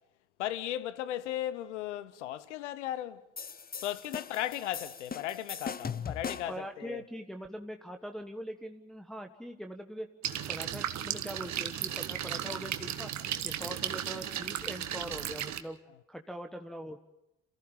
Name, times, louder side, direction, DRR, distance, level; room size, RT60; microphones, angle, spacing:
voice 1, 0.4-3.2 3.8-7.0, left 13 dB, 85° left, 0.9 m, -36 dB
sound 1, 3.4-6.7, left 6 dB, 25° left, 0.9 m, -40 dB
voice 2, 6.5-10.1 10.5-13.1 13.4-15.8 16.1-17.0, equal, ahead, 1.4 m, -42 dB
sound 2, 10.2-15.6, right 10 dB, 50° right, 1.5 m, -35 dB
27.5 x 15.0 x 7.3 m
hypercardioid pair, 55°, 35 cm